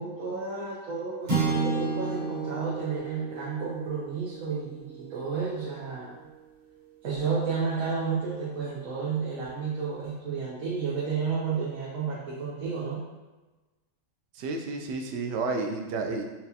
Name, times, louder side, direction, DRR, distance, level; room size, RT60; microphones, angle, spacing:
voice 1, 0.0-6.1 7.0-13.0, right 5 dB, 85° right, -7 dB, 1.2 m, -31 dB
sound 1, 1.3-5.7, right 4 dB, 35° right, 1.0 m, -32 dB
voice 2, 14.4-16.2, right 3 dB, 65° right, 3 dB, 0.7 m, -31 dB
5.6 x 2.3 x 2.7 m, 1.2 s
omnidirectional pair, 1.4 m